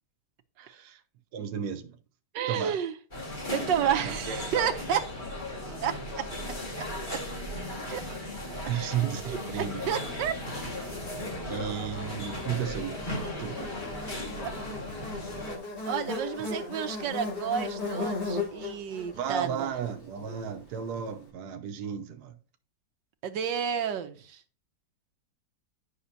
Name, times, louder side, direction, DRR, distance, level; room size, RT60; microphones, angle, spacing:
voice 1, 0.6-1.0 1.3-2.0 2.5-2.8 4.0-4.7 8.7-9.9 11.5-13.1 13.4-13.7 18.6-18.7 19.1-22.4, right 8 dB, 65° right, 1.2 m, -34 dB
voice 2, 2.3-2.9 3.5-5.0 5.8-6.2 7.1-7.2 7.9-8.0 8.5-8.6 9.3-10.3 14.4-14.5 15.9-19.8 23.2-24.4, right 8 dB, 85° right, 1.4 m, -31 dB
sound 1, 3.1-15.6, left 1 dB, 25° left, 2.0 m, -36 dB
Buzz, 10.5-20.9, left 3 dB, 85° left, 3.7 m, -37 dB
9.8 x 5.9 x 2.7 m
omnidirectional pair, 1.9 m